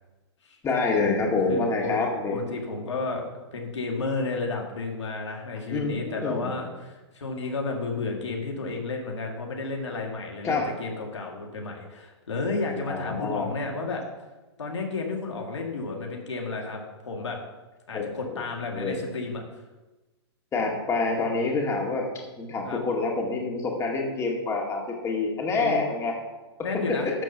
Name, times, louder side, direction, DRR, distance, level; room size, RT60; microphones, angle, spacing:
voice 1, 0.6-2.4 5.7-6.5 10.4-10.7 12.9-13.5 17.9-18.4 18.7-19.0 20.5-22.1 22.4-26.1, left 3 dB, 20° left, 0 dB, 2.2 m, -27 dB
voice 2, 1.5-2.0 2.3-14.0 14.6-17.4 17.9-19.4 22.6-22.8 25.6-25.9 26.6-27.1, left 3 dB, 85° left, 1 dB, 2.2 m, -32 dB
12.0 x 4.5 x 6.8 m, 1.1 s
hypercardioid pair, 125°, 15 cm